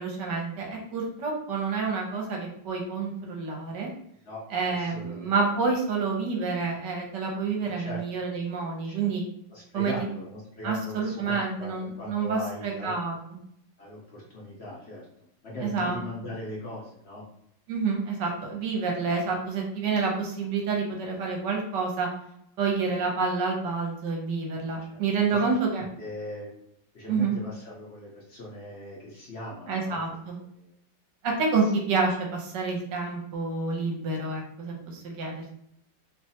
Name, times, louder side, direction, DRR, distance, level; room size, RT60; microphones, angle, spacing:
voice 1, 0.0-3.9 4.5-9.2 9.7-10.1 10.6-13.4 15.6-16.0 17.7-22.1 22.6-25.9 27.1-27.4 29.7-30.4 31.2-35.6, right 4 dB, 75° right, 0 dB, 1.3 m, -28 dB
voice 2, 4.2-5.3 5.6-5.7 7.8-8.0 8.8-9.1 9.5-13.0 13.8-17.2 18.2-18.3 24.9-25.0 26.0-26.5 26.9-30.0 30.5-30.7, left 1 dB, 70° left, -5 dB, 0.6 m, -40 dB
3.0 x 2.3 x 2.7 m, 0.74 s
omnidirectional pair, 2.0 m